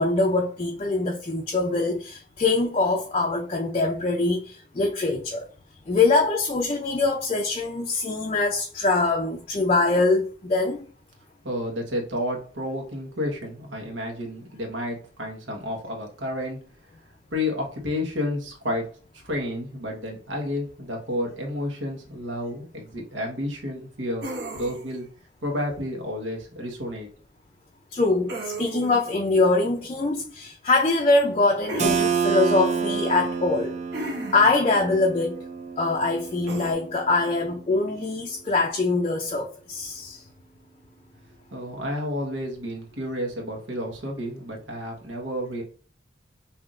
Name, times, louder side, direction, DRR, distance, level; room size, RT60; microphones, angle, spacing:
voice 1, 0.0-5.5 5.9-10.9 27.9-33.7 34.3-35.5 35.8-40.2, left 3 dB, 30° left, 0.4 m, -23 dB
voice 2, 11.4-16.6 17.3-18.9 19.1-25.1 25.4-27.1 41.5-45.6, left 1 dB, 90° right, 1.3 m, -31 dB
sound 1, 24.2-25.0 28.3-29.1 31.7-32.1 33.9-34.6 36.5-36.7, right 1 dB, 60° right, 1.0 m, -34 dB
Keyboard (musical), 31.8-37.3, right 6 dB, 40° right, 0.5 m, -28 dB
5.7 x 2.7 x 2.5 m
head